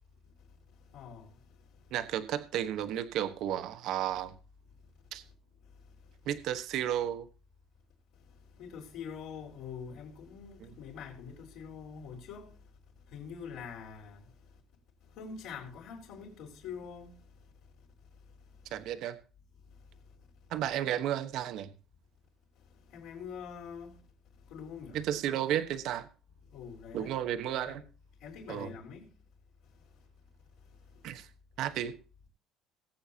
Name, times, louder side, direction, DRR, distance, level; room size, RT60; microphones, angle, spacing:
voice 1, 0.9-1.3 8.6-12.5 13.1-14.2 15.2-17.1 22.9-23.9 24.5-25.0 26.5-27.2 27.6-27.8 28.2-29.1, left 6 dB, 55° left, 4.4 m, -44 dB
voice 2, 1.9-4.3 5.1-5.2 6.3-7.3 10.6-10.7 18.7-19.2 20.5-21.7 24.9-26.1 26.9-27.8 28.5-28.7 31.0-31.3 31.6-31.9, right 11 dB, 50° right, 1.1 m, -33 dB
20.0 x 8.7 x 2.8 m
cardioid pair, 175°, 0 cm